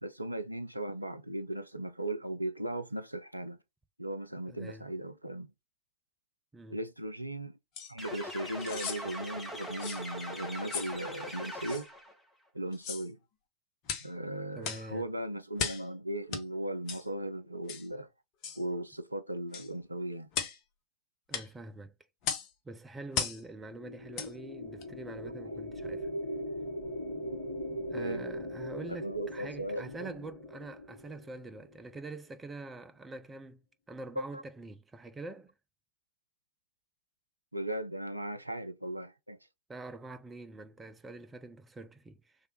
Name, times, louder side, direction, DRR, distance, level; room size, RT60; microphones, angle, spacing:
voice 1, 0.0-3.6 4.0-5.5 6.7-7.5 7.9-11.9 12.5-13.2 14.0-18.1 18.6-20.3 25.5-25.6 28.0-28.2 29.0-30.1 34.3-34.4 37.5-39.4, right 1 dB, 85° right, 0.4 m, -37 dB
voice 2, 4.5-4.9 6.5-6.8 14.5-15.1 21.3-21.9 22.6-26.1 27.9-33.6 33.9-35.5 39.7-42.4, right 2 dB, 15° right, 0.5 m, -45 dB
sound 1, 7.7-7.9 8.6-9.0 9.8-10.0 10.7-10.9 11.7-11.8 12.7-13.1 13.8-14.1 14.6-14.9 15.6-15.9 16.3-16.4 16.9-17.0 17.7-17.9 18.4-18.6 19.5-19.7 20.3-20.6 21.3-21.5 22.2-22.5 23.1-23.4 24.1-24.3 24.8-24.9, left 7 dB, 40° left, 0.8 m, -36 dB
sound 2, 8.0-12.1, equal, 5° left, 1.1 m, -41 dB
sound 3, 23.6-32.0, equal, 75° left, 1.0 m, -40 dB
3.3 x 2.5 x 4.2 m
figure-of-eight pair, 90°, 0 cm